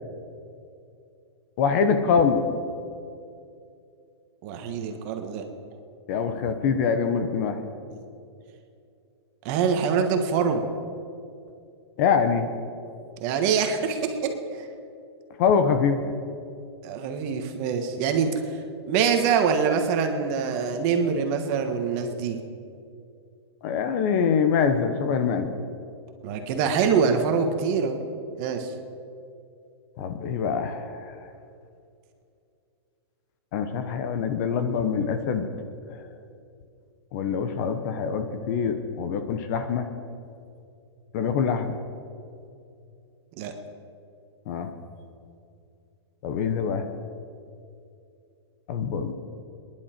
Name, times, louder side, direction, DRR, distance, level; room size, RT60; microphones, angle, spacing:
voice 1, 1.6-2.4 6.1-7.6 12.0-12.5 15.4-16.0 23.6-25.5 30.0-31.1 33.5-35.4 35.9-36.0 37.1-39.9 41.1-41.8 44.5-44.7 46.2-46.9 48.7-49.1, left 6 dB, 40° left, 8 dB, 1.1 m, -24 dB
voice 2, 4.4-5.4 7.9-8.0 9.4-10.7 13.2-14.7 16.8-18.6 18.9-22.4 26.2-28.0 28.4-28.7 43.4-43.5, right 6 dB, 35° right, 5 dB, 1.5 m, -25 dB
26.5 x 11.0 x 4.5 m, 2.5 s
hypercardioid pair, 155°, 14 cm